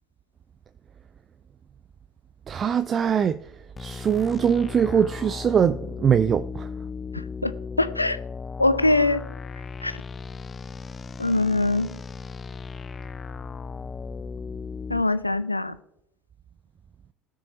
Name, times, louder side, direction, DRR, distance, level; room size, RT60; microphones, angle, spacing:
voice 1, 2.5-3.4 3.8-6.7, right 7 dB, 35° right, 0.4 m, -22 dB
sound 1, 3.8-15.0, left 5 dB, 25° left, 0.4 m, -36 dB
voice 2, 7.1-7.5 7.8-8.2 8.6-9.3 9.8-9.9 11.2-12.0 14.9-15.8, left 2 dB, 90° left, 0.4 m, -23 dB
19.5 x 6.5 x 2.9 m
figure-of-eight pair, 65°, 0 cm